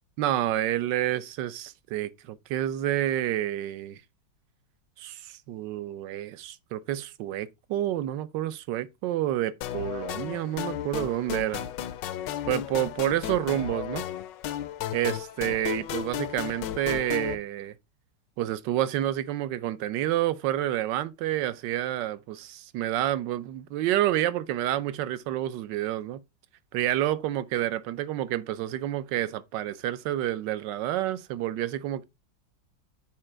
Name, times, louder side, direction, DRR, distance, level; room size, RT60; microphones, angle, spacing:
voice 1, 0.2-4.0 5.0-11.7 12.5-14.1 14.9-17.8 18.4-26.2 26.7-32.0, right 13 dB, 75° right, 1.2 m, -29 dB
sound 1, 9.6-17.3, left 11 dB, 75° left, 1.2 m, -34 dB
7.7 x 4.9 x 4.4 m
omnidirectional pair, 2.1 m